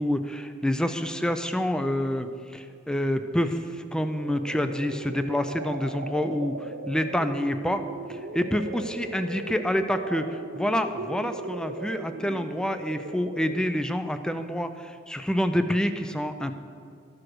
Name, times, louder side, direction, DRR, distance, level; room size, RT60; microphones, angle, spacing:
voice 1, 0.0-3.6 3.9-7.8 8.1-16.5, equal, 5° left, 9 dB, 0.3 m, -27 dB
sound 1, 3.9-13.9, right 3 dB, 65° right, 0.6 m, -38 dB
13.0 x 4.8 x 6.1 m, 2.4 s
head